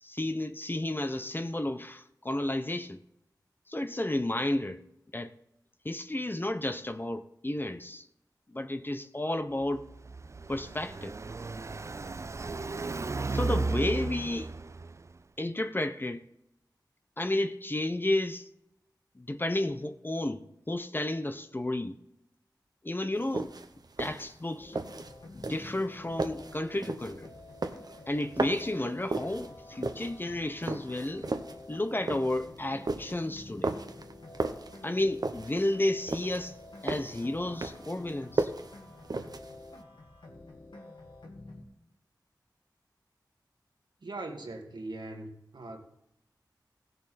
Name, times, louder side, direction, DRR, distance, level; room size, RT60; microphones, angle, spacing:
voice 1, 0.0-3.0 3.7-4.8 5.1-5.3 5.8-8.0 8.5-9.9 10.5-11.1 13.3-14.5 15.4-16.2 17.2-18.5 19.2-22.0 22.8-23.5 24.0-24.8 25.3-27.3 28.1-31.3 31.7-33.7 34.8-36.5 36.8-38.5, left 1 dB, 25° left, 0.8 m, -32 dB
Car passing by, 9.6-15.2, right 3 dB, 40° right, 0.4 m, -35 dB
sound 1, 23.2-39.8, right 3 dB, 60° right, 0.9 m, -36 dB
sound 2, 24.6-41.6, left 2 dB, 85° left, 1.9 m, -49 dB
voice 2, 44.0-45.8, right 2 dB, 75° right, 1.9 m, -40 dB
16.5 x 6.9 x 4.2 m
wide cardioid pair, 55°, 8 cm